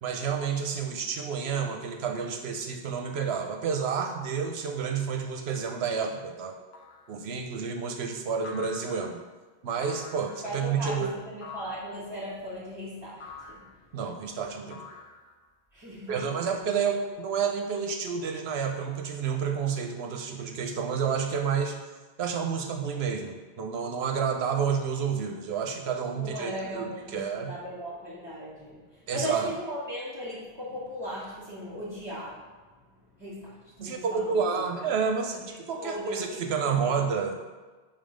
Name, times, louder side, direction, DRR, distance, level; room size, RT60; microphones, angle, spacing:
voice 1, 0.0-6.6 7.1-9.2 9.6-11.1 13.9-14.8 16.1-21.8 22.2-27.5 29.1-29.5 33.8-35.4 35.7-37.4, right 6 dB, 80° right, 4 dB, 0.9 m, -30 dB
sound 1, 6.7-7.1 8.4-9.2 9.9-10.5 11.4-11.9 13.2-13.7 14.7-15.5, left 4 dB, 75° left, 0.9 m, -45 dB
voice 2, 10.4-13.7 15.7-16.5 26.1-32.4 33.2-34.6 35.8-36.4 36.7-37.0, equal, 25° right, -11 dB, 1.6 m, -38 dB
5.4 x 3.7 x 5.0 m, 1.3 s
omnidirectional pair, 1.1 m